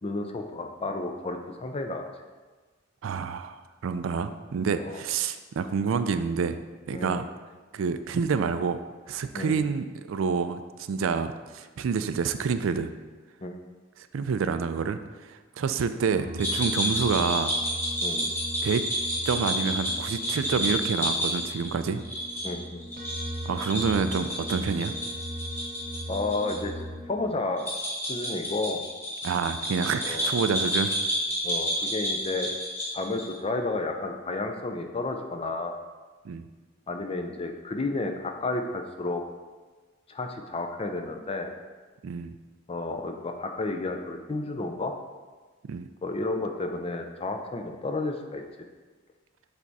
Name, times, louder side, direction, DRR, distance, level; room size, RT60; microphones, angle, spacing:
voice 1, 0.0-2.1 4.8-5.0 6.9-7.2 9.3-9.7 13.4-13.5 18.0-18.3 22.4-22.8 26.1-27.6 28.1-28.8 30.0-30.3 31.4-32.5 32.9-35.7 36.9-39.2 40.1-41.5 42.7-44.9 46.0-48.4, left 2 dB, 30° left, 5 dB, 0.5 m, -31 dB
voice 2, 3.0-6.6 6.9-7.3 7.7-8.8 9.1-10.6 10.9-12.9 14.1-15.0 15.3-17.5 18.6-18.8 19.3-22.0 23.5-24.9 29.2-31.0 36.2-36.5 42.0-42.3 45.7-45.9, right 5 dB, 80° right, 11 dB, 0.4 m, -28 dB
sound 1, 16.1-27.2, equal, 45° right, 0.7 m, -39 dB
sound 2, 16.4-26.6 26.8-26.9 27.6-33.3, equal, 10° left, 1.6 m, -30 dB
7.3 x 3.4 x 4.1 m, 1.3 s
head